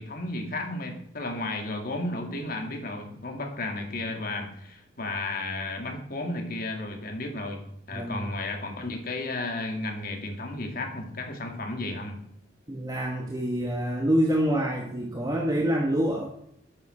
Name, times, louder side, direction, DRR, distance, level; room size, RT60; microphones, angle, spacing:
voice 1, 0.0-12.2, left 2 dB, 55° left, 4 dB, 2.1 m, -33 dB
voice 2, 7.9-8.3 12.7-16.3, equal, 20° right, 0 dB, 1.3 m, -26 dB
11.5 x 8.7 x 4.3 m, 0.72 s
head